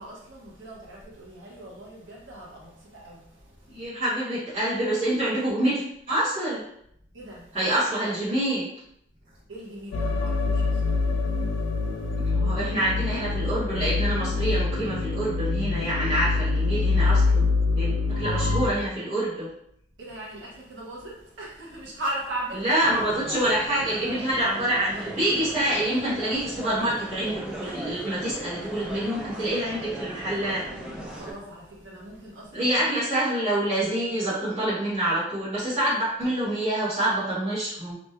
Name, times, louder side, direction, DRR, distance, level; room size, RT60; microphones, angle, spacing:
voice 1, 0.0-3.9 7.1-7.6 9.2-12.3 20.0-22.7 30.9-32.9, right 1 dB, 70° right, -4 dB, 1.0 m, -39 dB
voice 2, 3.7-5.8 6.1-6.6 7.5-8.6 12.3-17.5 17.8-19.5 22.6-30.6 32.5-37.9, right 1 dB, 30° right, -13 dB, 1.1 m, -26 dB
sound 1, 9.9-18.7, left 3 dB, 70° left, 0.4 m, -25 dB
sound 2, 22.8-31.3, right 1 dB, 5° right, 0.3 m, -38 dB
3.0 x 3.0 x 2.2 m, 0.72 s
head